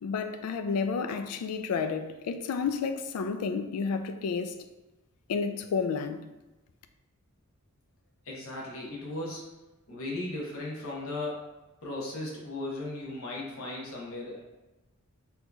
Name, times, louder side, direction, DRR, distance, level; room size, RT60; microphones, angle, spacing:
voice 1, 0.0-4.6 5.3-6.2, left 5 dB, 90° left, 0.3 m, -31 dB
voice 2, 8.2-9.5 9.9-11.5 11.8-14.4, left 2 dB, 70° left, 0.9 m, -36 dB
4.3 x 2.7 x 2.3 m
head